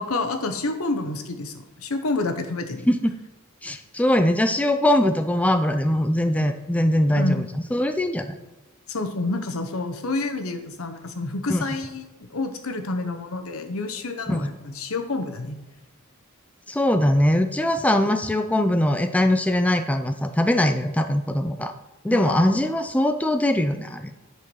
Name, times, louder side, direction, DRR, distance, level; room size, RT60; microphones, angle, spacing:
voice 1, 0.0-2.9 7.1-7.4 8.9-15.6 22.1-22.6, left 2 dB, 75° left, 6 dB, 1.0 m, -29 dB
voice 2, 3.6-7.4 7.7-8.4 11.5-11.6 14.3-14.5 16.7-21.7 22.0-24.2, left 1 dB, 5° left, 7 dB, 0.4 m, -21 dB
10.0 x 4.6 x 6.2 m, 1.1 s
head